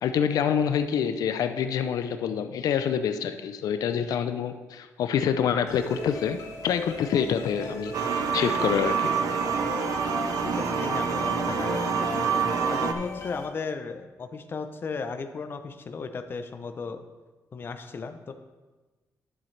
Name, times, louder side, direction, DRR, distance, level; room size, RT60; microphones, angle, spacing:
voice 1, 0.0-9.1, left 8 dB, 90° left, 9 dB, 0.4 m, -27 dB
sound 1, 5.7-13.5, left 3 dB, 60° left, 1.8 m, -38 dB
sound 2, 7.9-12.9, right 6 dB, 75° right, 0.6 m, -27 dB
voice 2, 10.4-17.0 17.5-18.3, left 4 dB, 35° left, 8 dB, 0.6 m, -35 dB
10.0 x 7.3 x 3.3 m, 1.2 s
wide cardioid pair, 145°, 6 cm